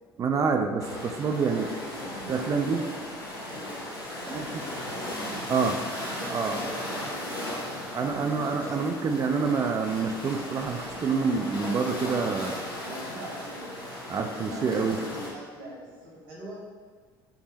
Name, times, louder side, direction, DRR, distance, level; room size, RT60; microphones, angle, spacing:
voice 1, 0.2-1.6 2.3-2.8 4.3-4.4 5.5-5.8 6.3-6.6 7.9-12.6 14.1-15.0, right 5 dB, 30° right, 5 dB, 0.4 m, -27 dB
sound 1, 0.8-15.3, left 1 dB, 85° left, 0.6 m, -36 dB
voice 2, 1.3-3.7 4.1-5.1 6.2-9.2 12.8-16.6, right 1 dB, 75° right, -6 dB, 1.3 m, -42 dB
4.7 x 2.6 x 3.2 m, 1.5 s
figure-of-eight pair, 55°, 12 cm